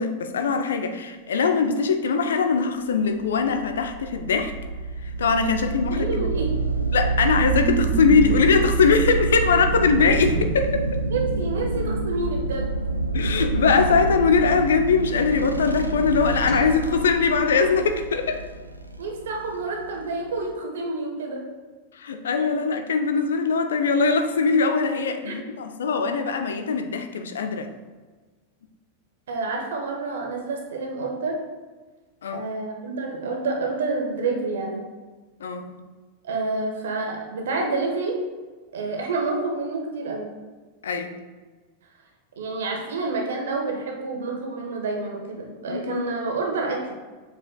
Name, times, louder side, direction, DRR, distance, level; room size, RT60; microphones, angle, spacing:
voice 1, 0.0-4.5 5.2-6.2 6.9-11.0 13.1-18.4 21.9-27.7 32.2-32.4 35.4-35.8 40.8-41.1 45.7-46.0, left 5 dB, 65° left, 7 dB, 0.5 m, -21 dB
sound 1, 3.1-20.5, right 3 dB, 85° right, 0.4 m, -27 dB
voice 2, 5.9-6.6 11.1-12.7 19.0-21.5 25.2-25.4 29.3-31.4 32.3-34.8 36.2-38.2 38.7-40.3 42.4-46.9, right 3 dB, 60° right, 1 dB, 1.2 m, -28 dB
sound 2, 7.5-9.0 9.7-10.7 11.1-11.2 11.7-12.5, right 3 dB, 30° right, 0.6 m, -32 dB
sound 3, 16.5-18.9, equal, 40° left, 1.9 m, -41 dB
7.6 x 5.8 x 2.3 m, 1.3 s
figure-of-eight pair, 90°, 0 cm